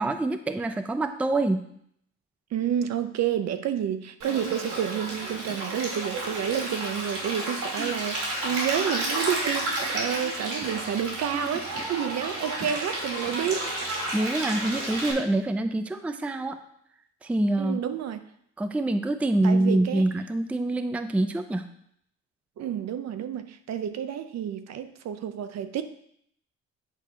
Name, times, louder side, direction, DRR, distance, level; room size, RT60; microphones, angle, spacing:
voice 1, 0.0-1.7 7.8-7.9 11.3-11.6 14.1-16.6 17.2-17.8 18.6-21.7, right 2 dB, 5° right, 8 dB, 0.4 m, -26 dB
voice 2, 2.5-13.7 17.6-18.2 19.4-20.0 22.6-25.8, right 9 dB, 60° right, 10 dB, 0.6 m, -30 dB
Stream, 4.2-15.1, right 1 dB, 85° right, 2.2 m, -31 dB
8.2 x 2.8 x 4.9 m, 0.69 s
cardioid pair, 90°, 30 cm